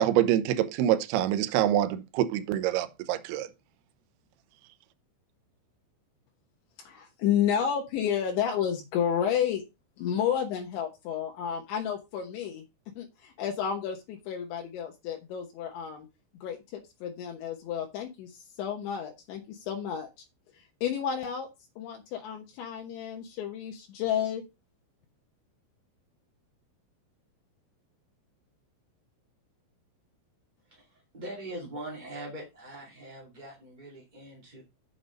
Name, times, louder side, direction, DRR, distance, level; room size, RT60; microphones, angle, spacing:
voice 1, 0.0-3.5, right 11 dB, 75° right, 2.4 m, -25 dB
voice 2, 6.8-9.6 10.0-12.6 13.0-16.1 16.4-20.1 20.8-21.5 21.8-24.4, left 8 dB, 75° left, 3.3 m, -31 dB
voice 3, 30.7-34.6, right 1 dB, 20° right, 1.2 m, -42 dB
8.1 x 6.0 x 5.3 m
omnidirectional pair, 5.7 m